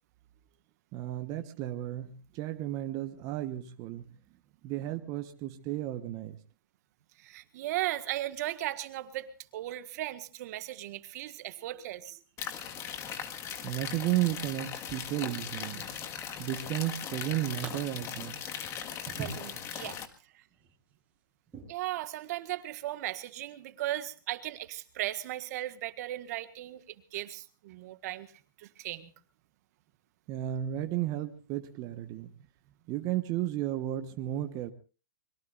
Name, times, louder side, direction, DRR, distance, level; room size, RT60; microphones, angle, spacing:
voice 1, 0.9-4.1 4.6-6.4 13.6-15.8 16.4-18.3 30.3-32.3 32.9-34.7, right 13 dB, 30° right, 7 dB, 1.2 m, -33 dB
voice 2, 7.2-12.2 19.2-20.0 20.3-20.4 21.7-28.3 28.6-29.1, right 14 dB, 50° right, 10 dB, 1.7 m, -37 dB
sound 1, 12.4-20.1, left 8 dB, 25° left, 1.7 m, -39 dB
sound 2, 15.7-16.6 17.0-17.7 18.2-20.0 20.5-20.7 21.5-21.6, right 5 dB, 10° right, 7.8 m, -45 dB
25.0 x 22.0 x 2.6 m, 0.36 s
hypercardioid pair, 135°, 11 cm